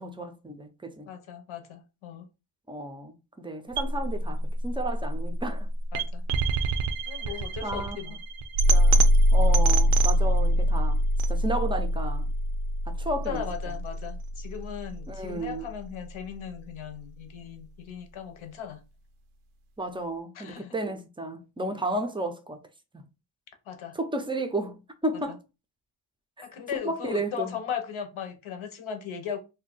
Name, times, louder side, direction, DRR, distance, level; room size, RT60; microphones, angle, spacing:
voice 1, 0.0-1.1 2.7-5.7 7.3-8.0 8.7-11.0 11.3-12.3 12.9-13.8 15.1-15.7 19.8-22.6 23.9-25.4 26.4-26.5 26.8-27.6, right 1 dB, 10° right, 0.3 m, -33 dB
voice 2, 1.1-2.3 5.9-6.2 7.1-8.2 13.3-18.8 20.3-20.7 23.7-24.0 25.3-25.4 26.4-29.4, left 8 dB, 85° left, 0.8 m, -37 dB
sound 1, 3.7-15.8, right 1 dB, 90° right, 0.5 m, -24 dB
2.6 x 2.2 x 3.8 m
wide cardioid pair, 110°, 47 cm